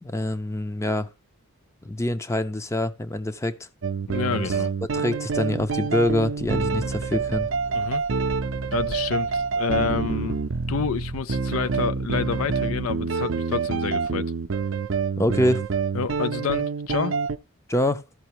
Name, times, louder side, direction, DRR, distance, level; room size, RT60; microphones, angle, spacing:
voice 1, 0.0-1.1 1.8-3.7 4.4-4.6 4.9-7.5 15.2-15.6 17.7-18.0, left 1 dB, 15° left, 0.5 m, -25 dB
sound 1, 3.8-17.4, right 5 dB, 65° right, 0.5 m, -27 dB
voice 2, 4.1-4.7 7.7-8.0 8.7-10.4 10.7-14.3 15.9-17.2, left 6 dB, 80° left, 0.5 m, -28 dB
Thunder / Rain, 5.2-14.1 14.6-15.9, right 1 dB, 60° left, 1.1 m, -46 dB
14.0 x 5.7 x 3.0 m
head